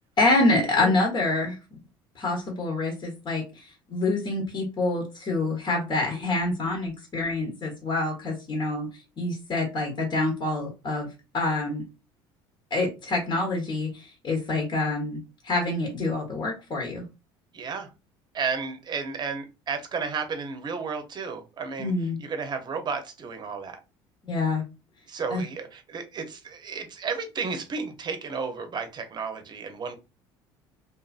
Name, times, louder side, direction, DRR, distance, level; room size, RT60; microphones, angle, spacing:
voice 1, 0.2-1.6 2.2-3.6 3.9-8.9 9.2-11.1 11.3-11.8 12.7-15.2 15.4-17.1 21.8-22.2 24.2-24.6 25.3-25.4, left 2 dB, 40° left, 1.0 m, -26 dB
voice 2, 17.5-17.9 18.3-21.9 22.2-23.8 25.1-30.0, right 5 dB, 35° right, 0.8 m, -33 dB
2.6 x 2.6 x 2.4 m
supercardioid pair, 85°, 12 cm